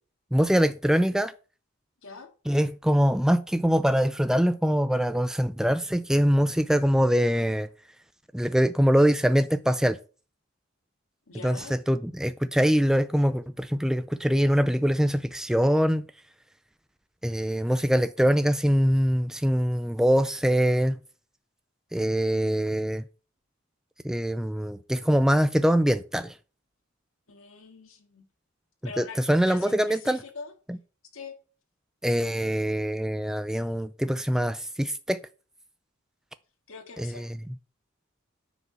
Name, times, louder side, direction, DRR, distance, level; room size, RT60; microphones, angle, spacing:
voice 1, 0.3-1.3 2.5-7.7 8.3-10.0 11.4-16.1 17.2-21.0 21.9-23.0 24.0-26.3 29.0-30.2 30.7-30.8 32.0-35.2 37.0-37.4, equal, 5° right, 0.4 m, -23 dB
voice 2, 11.3-11.7 27.3-28.3 28.8-30.5 31.1-31.3 36.7-37.3, left 4 dB, 80° left, 2.4 m, -43 dB
9.6 x 5.2 x 6.4 m
head